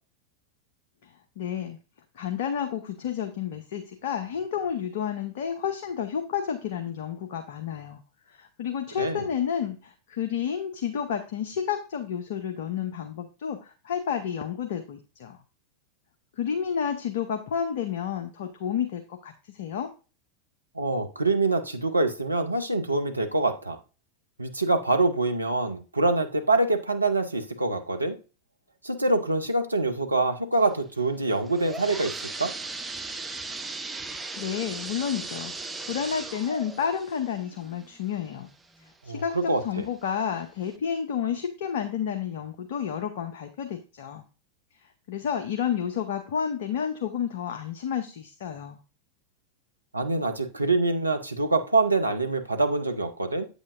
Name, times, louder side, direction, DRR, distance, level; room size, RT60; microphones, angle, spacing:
voice 1, 1.4-1.8 2.2-8.0 8.3-15.4 16.4-19.9 34.4-35.5 35.9-38.5 39.0-44.2 45.1-48.8, left 8 dB, 55° left, 5 dB, 0.8 m, -30 dB
voice 2, 20.8-23.8 24.4-28.2 28.8-32.1 32.4-32.5 39.1-39.8 49.9-53.5, right 2 dB, 85° right, 6 dB, 0.8 m, -25 dB
sound 1, 31.3-38.9 39.4-39.5 40.2-40.3 40.7-40.8, right 3 dB, 10° right, 0.7 m, -38 dB
8.5 x 8.1 x 2.6 m, 0.33 s
figure-of-eight pair, 90°, 0 cm